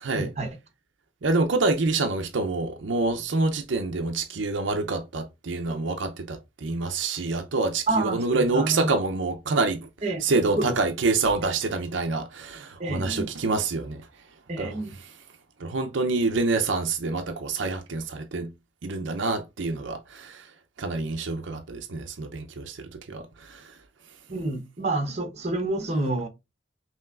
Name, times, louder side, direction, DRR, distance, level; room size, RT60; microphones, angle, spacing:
voice 1, 0.1-0.6 7.9-8.9 10.0-10.2 10.6-10.7 12.8-13.3 14.5-14.9 24.3-26.3, right 2 dB, 35° right, 0.9 m, -28 dB
voice 2, 1.2-9.9 10.2-14.1 14.6-14.8 15.6-18.5 18.8-20.5 20.8-23.8, right 3 dB, 70° right, 0.6 m, -27 dB
5.4 x 3.0 x 2.4 m
head